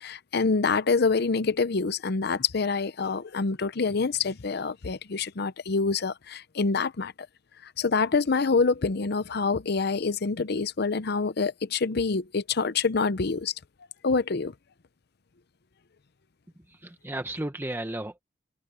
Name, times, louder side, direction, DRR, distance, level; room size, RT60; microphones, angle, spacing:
voice 1, 0.0-7.1 7.6-13.5 14.0-14.5, left 4 dB, 55° left, 0.7 m, -26 dB
voice 2, 16.7-18.2, right 1 dB, 10° right, 1.1 m, -34 dB
open air
head